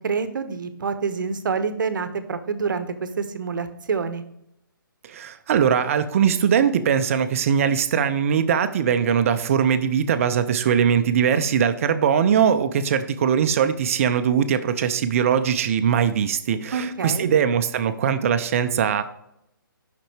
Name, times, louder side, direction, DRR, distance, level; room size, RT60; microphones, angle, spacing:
voice 1, 0.0-4.2 16.7-17.3, right 5 dB, 60° right, 11 dB, 0.8 m, -27 dB
voice 2, 5.0-19.0, right 8 dB, 40° right, 11 dB, 0.5 m, -21 dB
7.6 x 5.9 x 3.3 m, 0.78 s
figure-of-eight pair, 140°, 12 cm